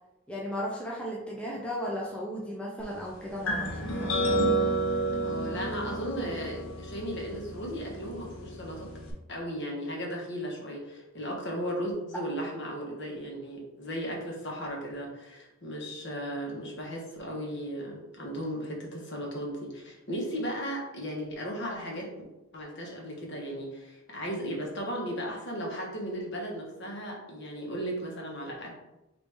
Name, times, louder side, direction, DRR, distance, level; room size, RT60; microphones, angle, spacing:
voice 1, 0.3-4.2, equal, 5° left, -4 dB, 0.5 m, -35 dB
sound 1, 3.5-9.1, right 1 dB, 80° left, 0.8 m, -31 dB
voice 2, 5.2-8.9 9.3-22.1 22.5-28.7, equal, 55° left, -1 dB, 1.1 m, -36 dB
4.8 x 2.6 x 3.4 m, 0.98 s
head